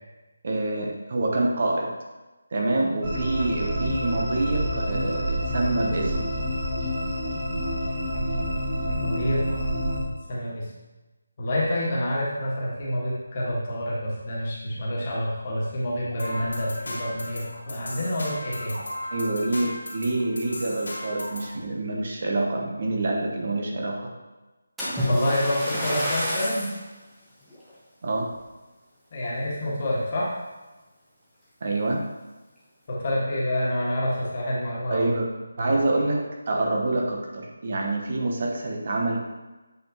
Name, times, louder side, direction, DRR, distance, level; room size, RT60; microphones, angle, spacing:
voice 1, 0.4-2.0 2.5-6.3 19.1-24.1 28.0-28.3 31.6-32.1 34.9-35.3 35.6-39.2, right 2 dB, 45° right, 0 dB, 1.0 m, -26 dB
sound 1, 3.0-10.0, equal, 25° right, 2.1 m, -28 dB
voice 2, 9.0-9.6 10.3-10.7 11.4-18.8 25.1-26.7 29.1-30.3 32.9-35.1 35.6-35.8, left 1 dB, 35° left, -6 dB, 1.8 m, -27 dB
sound 2, 16.2-21.5, left 1 dB, 85° left, 2.2 m, -36 dB
Splash splatter, 24.8-26.8 27.5-27.7 28.3-28.4, equal, 5° right, 1.2 m, -28 dB
8.2 x 4.5 x 3.0 m, 1.1 s
figure-of-eight pair, 170°, 0 cm